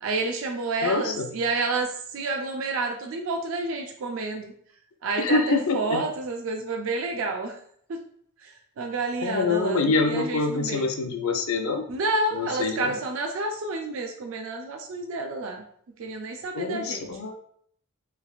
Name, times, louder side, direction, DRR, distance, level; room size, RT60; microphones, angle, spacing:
voice 1, 0.0-4.5 5.0-7.6 7.9-8.0 8.4-10.9 11.9-15.6 16.0-17.1, right 3 dB, 65° right, 2 dB, 0.4 m, -29 dB
voice 2, 0.8-1.4 5.2-6.0 9.2-11.9 12.3-12.9 16.5-17.4, left 3 dB, 75° left, 5 dB, 0.5 m, -25 dB
3.3 x 3.2 x 2.4 m, 0.63 s
head